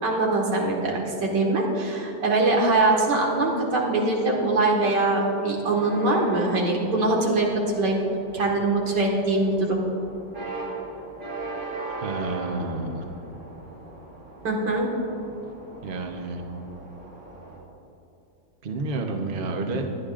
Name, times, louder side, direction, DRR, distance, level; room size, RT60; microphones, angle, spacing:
voice 1, 0.0-7.5 7.8-8.0 8.3-9.8 14.4-14.9, right 2 dB, 90° right, -1 dB, 2.4 m, -23 dB
sound 1, 5.7-17.6, right 2 dB, 70° right, 3.0 m, -39 dB
voice 2, 12.0-13.0 15.8-16.4 18.6-19.9, right 3 dB, 40° right, 3 dB, 1.0 m, -30 dB
21.5 x 10.5 x 2.5 m, 2.8 s
omnidirectional pair, 1.8 m